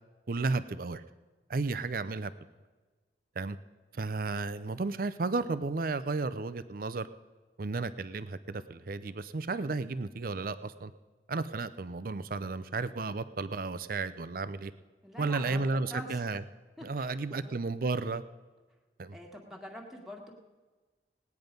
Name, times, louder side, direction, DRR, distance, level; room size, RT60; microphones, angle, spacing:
voice 1, 0.3-1.0 1.5-2.3 3.4-3.6 3.9-7.1 7.6-10.9 11.3-14.7 15.2-16.4 16.8-18.2 19.0-19.2, right 3 dB, 55° right, 13 dB, 0.5 m, -33 dB
voice 2, 15.0-16.2 16.8-17.6 19.1-20.3, equal, ahead, -1 dB, 1.7 m, -45 dB
18.5 x 9.5 x 5.2 m, 1.3 s
head